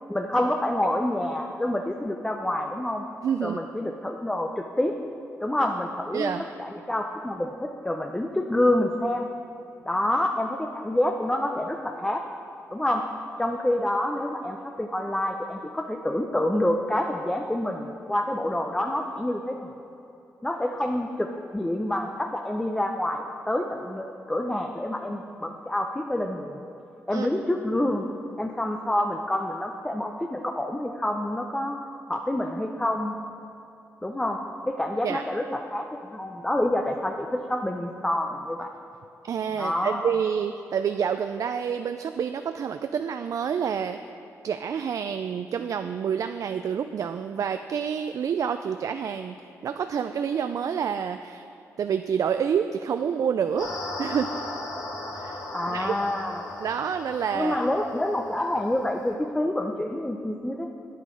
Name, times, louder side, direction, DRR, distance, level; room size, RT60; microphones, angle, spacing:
voice 1, 0.1-3.0 3.4-4.9 5.4-6.3 6.6-9.3 9.9-12.2 12.7-13.0 13.4-19.7 20.4-26.6 27.1-28.1 28.4-31.8 32.1-33.1 34.0-38.7 39.6-40.1 55.5-56.4 57.3-60.7, left 1 dB, 10° left, 3 dB, 0.6 m, -27 dB
voice 2, 3.2-3.6 6.1-6.4 27.1-27.3 35.0-35.2 39.2-44.0 44.4-51.5 51.8-54.4 55.1-55.4 55.7-56.0 56.6-57.6, right 7 dB, 65° right, 9 dB, 0.3 m, -28 dB
sound 1, 53.6-59.1, left 2 dB, 80° left, 1.6 m, -37 dB
8.9 x 8.4 x 5.2 m, 2.8 s
cardioid pair, 75°, 6 cm